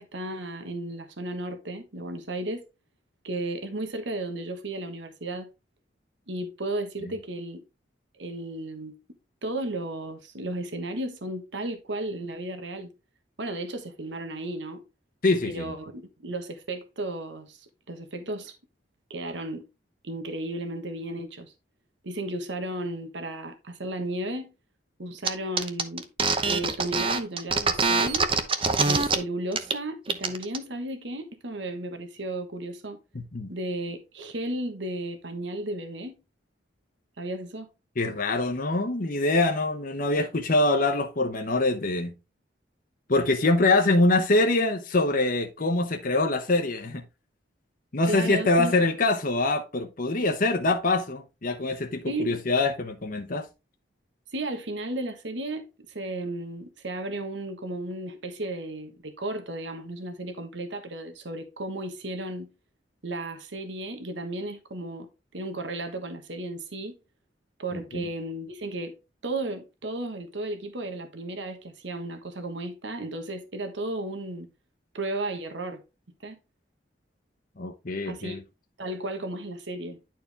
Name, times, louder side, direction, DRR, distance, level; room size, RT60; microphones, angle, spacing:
voice 1, 0.0-2.6 3.2-5.5 6.3-7.6 8.2-9.0 9.4-12.9 13.4-14.8 15.4-18.5 19.1-19.7 20.0-21.5 22.0-24.5 25.0-26.1 26.4-28.3 28.8-33.0 33.5-36.2 37.2-37.7 48.1-48.7 52.1-52.4 54.3-62.5 63.0-67.0 67.6-68.9 69.2-74.5 74.9-75.8 76.2-76.4 78.1-78.4 78.8-80.0, right 1 dB, 75° right, 1.3 m, -34 dB
voice 2, 15.2-15.6 33.1-33.5 38.0-42.1 43.1-47.0 47.9-53.5 67.7-68.0 77.6-78.4, left 2 dB, 50° left, 0.9 m, -24 dB
sound 1, 25.2-25.3 25.6-29.1 29.5-29.8 30.1-30.6, right 4 dB, 30° right, 0.8 m, -24 dB
10.5 x 4.6 x 3.4 m
head